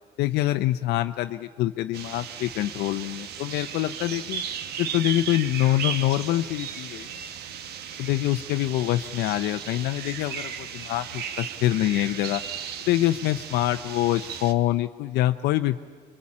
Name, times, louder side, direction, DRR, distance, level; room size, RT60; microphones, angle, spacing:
voice 1, 0.2-4.4 4.8-7.1 8.0-12.4 12.9-15.8, left 15 dB, 85° left, 8 dB, 0.7 m, -25 dB
sound 1, 1.9-14.5, right 8 dB, 70° right, 1.3 m, -36 dB
25.5 x 23.0 x 8.6 m, 1.5 s
cardioid pair, 110°, 17 cm